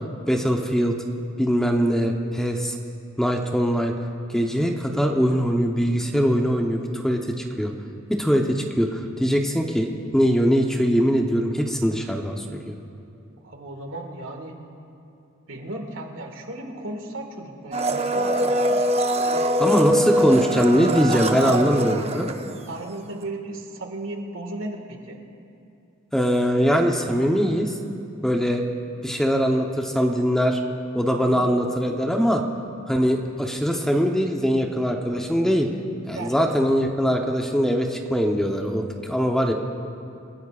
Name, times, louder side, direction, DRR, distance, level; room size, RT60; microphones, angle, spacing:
voice 1, 0.3-0.9 1.4-2.8 3.2-3.9 4.3-7.7 8.1-12.8 19.6-22.3 26.1-27.7 28.2-28.6 29.0-30.6 30.9-32.4 32.9-35.7 36.1-39.5, equal, 5° left, 2 dB, 0.9 m, -22 dB
voice 2, 13.4-14.6 15.5-18.8 19.2-22.2 22.7-25.2 31.2-31.5 36.1-36.3, right 2 dB, 80° right, 3 dB, 1.9 m, -35 dB
Domestic sounds home sounds, 17.7-23.0 23.2-23.3, right 1 dB, 30° right, 0.6 m, -23 dB
29.0 x 15.5 x 2.5 m, 2.6 s
head